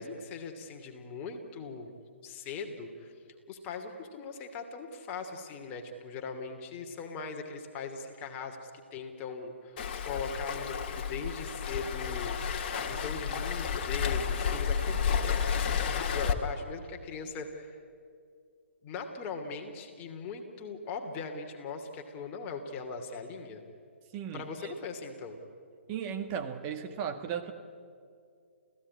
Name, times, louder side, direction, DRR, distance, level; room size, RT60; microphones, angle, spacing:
voice 1, 0.0-1.9 2.2-3.1 3.5-12.4 12.7-17.8 18.8-23.6 24.3-25.4, left 4 dB, 25° left, 4 dB, 2.7 m, -40 dB
Waves surf, 9.8-16.3, left 7 dB, 40° left, 1.8 m, -31 dB
voice 2, 24.1-24.7 25.9-27.5, right 8 dB, 30° right, 6 dB, 1.7 m, -36 dB
28.0 x 16.5 x 9.8 m, 2.3 s
figure-of-eight pair, 130°, 7 cm